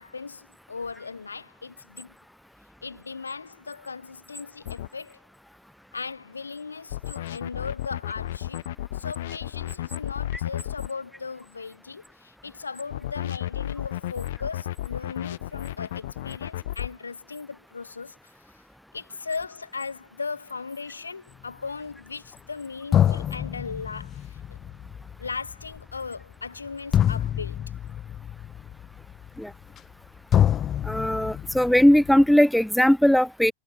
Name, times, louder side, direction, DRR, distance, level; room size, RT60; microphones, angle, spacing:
voice 1, 0.0-2.1 2.8-5.2 5.9-8.7 8.9-18.3 18.9-24.6 25.2-27.6, left 4 dB, 75° left, 5.9 m, -37 dB
sound 1, 4.7-4.9 6.9-10.9 12.9-16.9, left 14 dB, 55° left, 0.7 m, -33 dB
sound 2, 22.3-22.4 22.9-30.1 30.3-32.3, left 10 dB, 30° left, 1.8 m, -27 dB
voice 2, 30.8-33.5, equal, ahead, 0.7 m, -19 dB
figure-of-eight pair, 90°, 0 cm